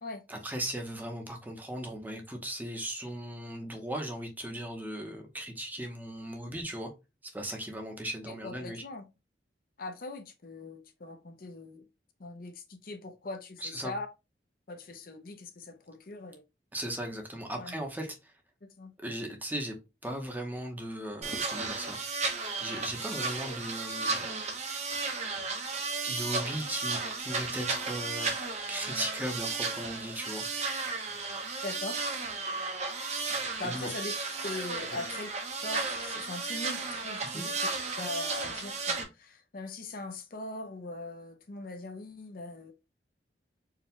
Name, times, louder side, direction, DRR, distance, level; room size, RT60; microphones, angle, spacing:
voice 1, 0.3-6.9 7.2-8.8 13.6-13.9 16.7-18.3 19.0-19.8 20.0-22.0 22.6-24.3 26.0-28.4 28.7-30.5 33.6-33.9 34.9-35.0 37.2-37.5, right 1 dB, 10° right, 0.8 m, -37 dB
voice 2, 8.3-9.1 9.8-11.8 12.2-14.1 14.7-16.4 17.5-17.7 18.6-18.9 31.6-32.0 33.6-34.1 34.4-35.3 35.6-37.7 38.0-42.7, left 2 dB, 55° left, 0.7 m, -41 dB
sound 1, 21.2-39.0, right 4 dB, 40° right, 0.9 m, -34 dB
4.6 x 2.3 x 3.6 m
head